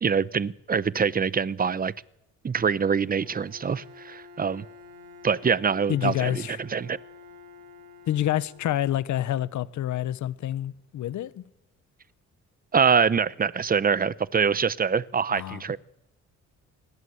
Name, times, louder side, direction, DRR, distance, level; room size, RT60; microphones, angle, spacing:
voice 1, 0.0-1.9 2.4-4.6 5.2-7.0 12.7-15.8, right 6 dB, 30° right, 0.9 m, -24 dB
Bowed string instrument, 3.0-9.1, left 4 dB, 80° right, 6.5 m, -49 dB
voice 2, 5.9-6.6 8.1-11.4 15.3-15.6, left 12 dB, 70° left, 1.1 m, -28 dB
26.5 x 20.0 x 8.2 m
cardioid pair, 90°, 30 cm